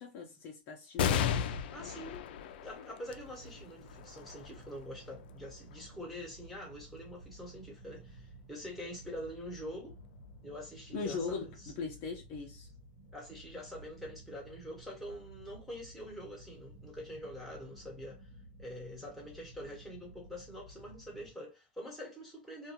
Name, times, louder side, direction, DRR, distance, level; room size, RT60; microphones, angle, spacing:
voice 1, 0.0-1.5 10.9-12.7, left 4 dB, 40° left, 0.7 m, -40 dB
sound 1, 1.0-7.9 8.5-8.6 9.7-10.3, left 8 dB, 70° left, 0.4 m, -37 dB
voice 2, 1.7-2.2 2.6-10.0 10.4-11.4 13.1-18.2 18.6-22.7, equal, ahead, 1.3 m, -45 dB
sound 2, 3.0-21.3, right 1 dB, 75° right, 1.3 m, -54 dB
2.7 x 2.2 x 2.8 m
supercardioid pair, 145°, 6 cm